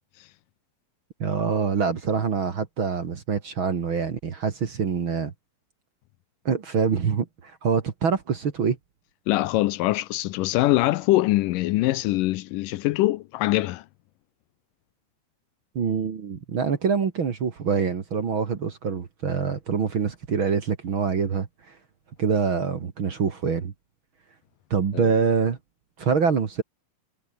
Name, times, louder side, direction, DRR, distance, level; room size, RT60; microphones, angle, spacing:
voice 1, 1.2-5.3 6.5-8.8 15.8-21.5 22.2-23.7 24.7-25.6 26.0-26.6, right 6 dB, 45° right, 2.2 m, -25 dB
voice 2, 9.3-13.8 24.9-25.1, left 17 dB, 80° left, 2.2 m, -23 dB
omnidirectional pair, 4.0 m